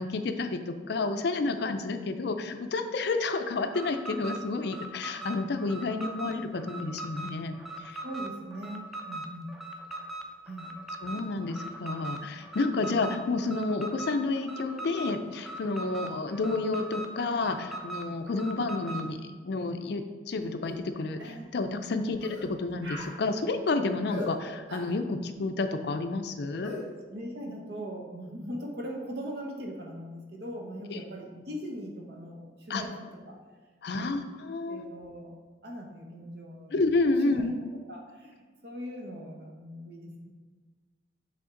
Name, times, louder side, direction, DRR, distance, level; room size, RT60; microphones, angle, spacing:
voice 1, 0.0-8.0 11.0-19.2 19.4-26.7 30.9-31.0 32.7-32.8 33.8-34.9 36.7-37.5, left 3 dB, 60° left, 8 dB, 0.4 m, -30 dB
Alarm, 3.6-19.1, right 2 dB, ahead, 0.4 m, -40 dB
voice 2, 8.0-9.5 10.4-10.8 27.1-33.4 33.9-34.2 34.7-35.4 35.6-36.8 37.2-37.5 37.7-40.3, equal, 60° right, 1 dB, 1.0 m, -40 dB
sound 1, 20.6-20.8 21.2-21.4 22.2-22.5 22.8-23.1 24.1-24.3 24.7-24.9 26.6-26.8, left 1 dB, 85° right, 1.5 m, -39 dB
7.7 x 3.6 x 3.7 m, 1.4 s
head